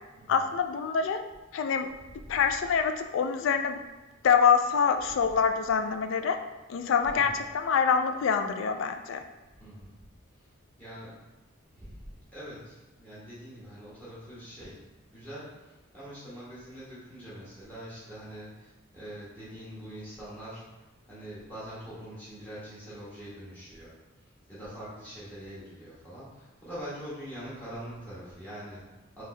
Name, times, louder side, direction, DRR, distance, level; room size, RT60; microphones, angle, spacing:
voice 1, 0.3-1.2 1.5-1.9 2.3-3.8 4.2-6.4 6.7-9.2, left 6 dB, 70° left, 7 dB, 0.3 m, -25 dB
voice 2, 7.1-7.4 9.6-10.1 10.3-10.5 10.8-11.2 11.7-12.0 12.3-14.8 15.1-29.2, equal, 10° left, -10 dB, 1.4 m, -44 dB
3.6 x 2.8 x 3.2 m, 1.1 s
head